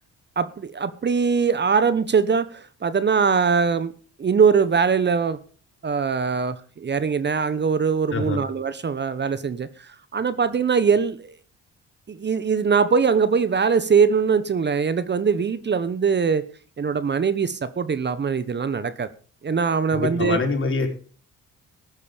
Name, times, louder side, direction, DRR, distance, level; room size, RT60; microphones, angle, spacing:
voice 1, 0.4-3.9 4.2-5.4 5.8-11.3 12.1-16.5 16.8-19.1 19.4-20.4, right 5 dB, 35° right, 1.2 m, -22 dB
voice 2, 8.1-8.4 19.9-20.9, left 4 dB, 45° left, 5.1 m, -25 dB
14.5 x 12.0 x 5.2 m
cardioid pair, 90°, 30 cm